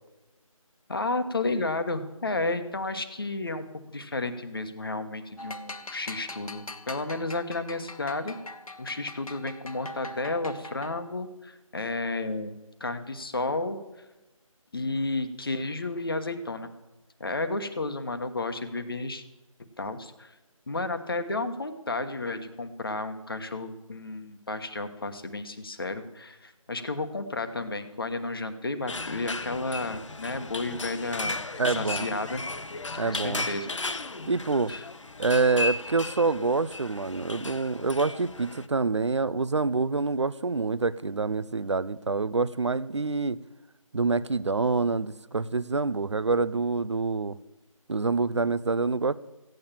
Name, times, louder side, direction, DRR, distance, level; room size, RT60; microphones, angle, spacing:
voice 1, 0.9-8.4 8.8-12.5 12.8-13.8 14.7-16.7 17.2-19.2 19.8-20.3 20.7-31.4 31.7-32.4 33.0-33.7 34.7-34.8, left 2 dB, 40° left, 9 dB, 1.3 m, -32 dB
sound 1, 5.4-11.2, left 2 dB, 80° left, 1.3 m, -42 dB
sound 2, 28.9-38.7, left 3 dB, 60° left, 0.9 m, -35 dB
voice 2, 31.6-32.1 33.0-33.5 34.3-34.7 35.2-43.4 43.9-47.4 47.9-49.1, right 3 dB, 55° right, 18 dB, 0.6 m, -26 dB
15.5 x 9.1 x 7.4 m, 1.1 s
figure-of-eight pair, 175°, 18 cm